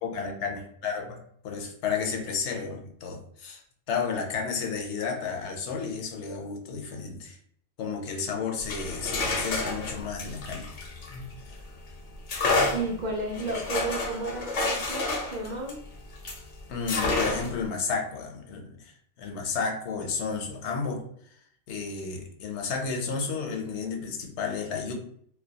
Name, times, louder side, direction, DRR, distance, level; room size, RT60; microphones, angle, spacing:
voice 1, 0.0-1.2 1.4-3.6 3.9-7.4 7.8-10.7 11.1-11.6 16.7-21.1 21.7-24.9, left 5 dB, 80° left, 3 dB, 0.9 m, -32 dB
sound 1, 8.6-11.6 12.3-16.4 16.9-17.7, left 3 dB, 55° left, 0.6 m, -29 dB
voice 2, 12.7-15.8, right 2 dB, 60° right, -1 dB, 0.5 m, -32 dB
2.2 x 2.2 x 2.7 m, 0.65 s
omnidirectional pair, 1.2 m